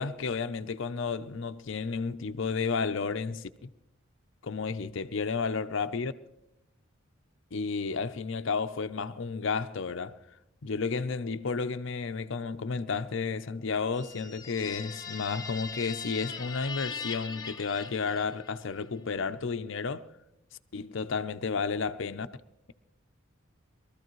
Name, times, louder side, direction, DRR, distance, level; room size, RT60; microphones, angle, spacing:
voice 1, 0.0-3.5 4.4-6.1 7.5-10.2 10.6-20.1 20.7-22.3, left 5 dB, 60° left, 0.5 m, -32 dB
sound 1, 13.9-18.6, left 5 dB, 15° left, 0.9 m, -40 dB
22.5 x 13.5 x 3.1 m
head